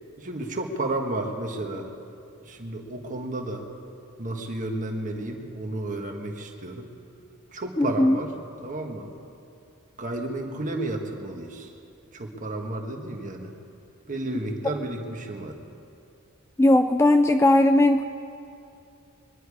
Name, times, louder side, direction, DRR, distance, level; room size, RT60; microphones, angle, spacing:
voice 1, 0.2-1.9 2.4-3.6 4.2-6.9 7.5-9.1 10.0-11.7 12.1-13.5 14.1-15.6, right 2 dB, 40° right, 2 dB, 1.5 m, -32 dB
voice 2, 7.8-8.2 16.6-18.0, left 1 dB, 10° left, 7 dB, 0.3 m, -18 dB
23.0 x 10.5 x 4.9 m, 2.6 s
head